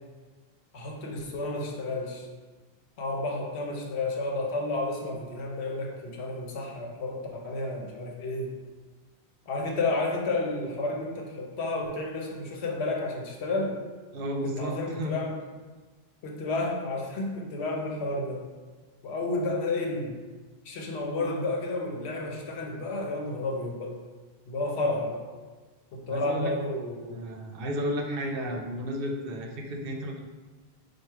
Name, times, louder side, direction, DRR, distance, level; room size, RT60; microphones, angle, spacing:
voice 1, 0.7-2.3 3.0-8.5 9.5-13.8 14.4-15.4 16.2-18.5 19.0-20.2 20.6-24.0 24.5-25.3 25.9-27.2, left 2 dB, 80° left, 1 dB, 1.0 m, -31 dB
voice 2, 14.1-15.2 26.1-26.5 27.1-30.3, equal, 65° right, 2 dB, 0.8 m, -33 dB
4.7 x 2.4 x 4.6 m, 1.4 s
omnidirectional pair, 1.1 m